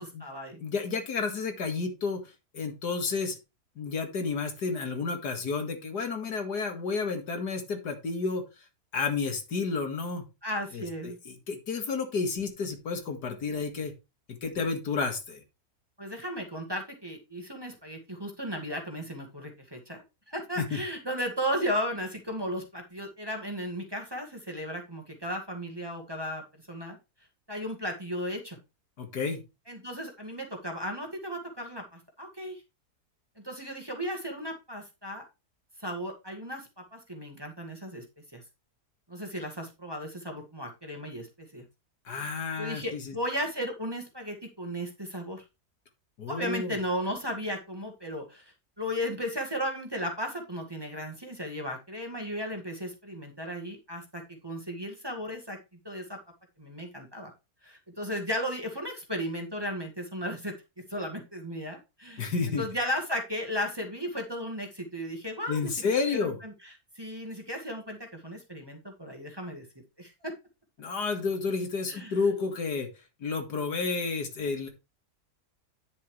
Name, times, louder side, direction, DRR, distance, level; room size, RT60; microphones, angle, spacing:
voice 1, 0.0-0.6 10.4-11.2 16.0-26.4 26.7-27.0 27.5-28.6 29.7-32.6 33.4-35.2 35.8-38.1 38.3-38.4 39.1-41.6 42.6-45.4 46.3-55.6 55.8-56.2 56.6-57.3 57.6-60.5 60.9-69.7 70.0-70.3 71.9-72.2, equal, 15° right, 1 dB, 1.8 m, -35 dB
voice 2, 0.6-2.2 2.5-3.4 3.8-8.4 8.9-10.2 10.7-13.9 14.3-15.4 20.6-20.8 29.0-29.4 42.1-43.1 46.2-46.8 62.2-62.6 65.5-66.4 70.8-72.9 73.2-74.7, left 4 dB, 85° left, 5 dB, 2.5 m, -31 dB
10.0 x 7.1 x 3.2 m, 0.26 s
omnidirectional pair, 1.7 m